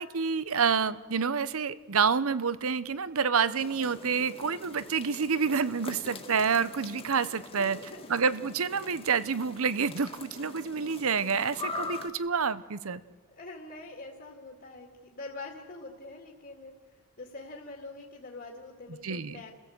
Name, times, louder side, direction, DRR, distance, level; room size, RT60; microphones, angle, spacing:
voice 1, 0.0-7.8 8.1-13.0 19.0-19.4, right 6 dB, 70° right, 15 dB, 0.8 m, -28 dB
sound 1, 3.6-12.1, left 3 dB, 25° left, 1.9 m, -43 dB
voice 2, 7.5-8.2 13.3-16.7 17.2-19.6, left 2 dB, 45° left, 0 dB, 2.2 m, -44 dB
29.0 x 16.0 x 7.9 m, 1.5 s
head